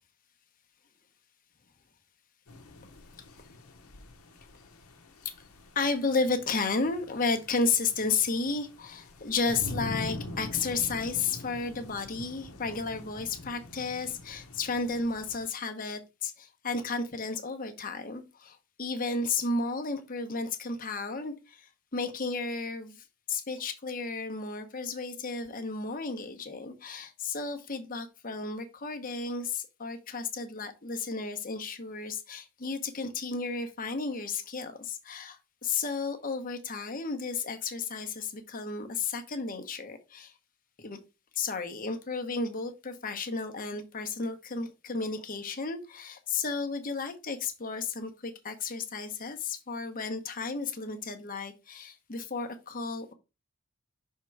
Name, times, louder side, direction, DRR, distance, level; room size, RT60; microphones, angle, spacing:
sound 1, 2.5-15.5, left 1 dB, 80° left, 1.0 m, -44 dB
voice 1, 5.7-40.3 40.8-41.0 41.3-53.1, left 4 dB, 40° left, 0.9 m, -33 dB
5.8 x 3.7 x 4.5 m
head